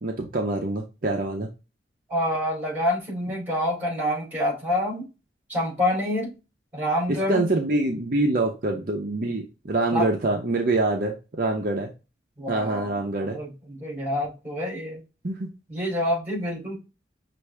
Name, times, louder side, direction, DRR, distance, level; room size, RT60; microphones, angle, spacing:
voice 1, 0.0-1.5 7.3-11.9 12.5-13.4 15.2-15.5, right 2 dB, 50° right, 2 dB, 0.7 m, -25 dB
voice 2, 2.1-5.1 5.5-6.3 6.7-7.5 9.9-10.1 12.4-15.0 15.7-16.8, left 1 dB, 10° right, -2 dB, 2.8 m, -27 dB
6.0 x 2.6 x 3.3 m, 0.28 s
head